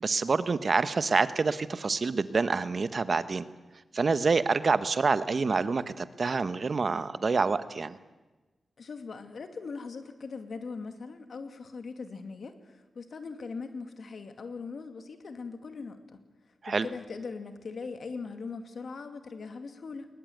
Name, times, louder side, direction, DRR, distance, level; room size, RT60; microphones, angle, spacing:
voice 1, 0.0-3.5 3.9-8.0 16.6-16.8, right 4 dB, 50° right, 13 dB, 1.1 m, -27 dB
voice 2, 8.8-16.2 16.7-20.1, left 4 dB, 65° left, 8 dB, 2.4 m, -40 dB
20.5 x 20.5 x 9.4 m, 1.2 s
wide cardioid pair, 85°, 0 cm